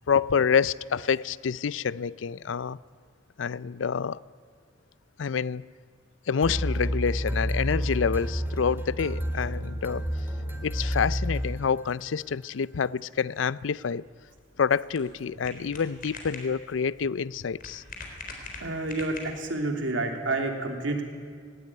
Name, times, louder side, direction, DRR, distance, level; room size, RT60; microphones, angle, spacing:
voice 1, 0.1-2.8 3.4-4.2 5.2-5.7 6.3-10.0 10.6-14.0 14.6-17.8, left 6 dB, 85° left, 0.5 m, -27 dB
sound 1, 6.4-12.1, equal, 10° right, 2.4 m, -30 dB
sound 2, 14.0-19.6, left 3 dB, 50° left, 3.9 m, -44 dB
voice 2, 18.6-21.0, right 2 dB, 85° right, 3.0 m, -29 dB
18.5 x 18.5 x 9.7 m
head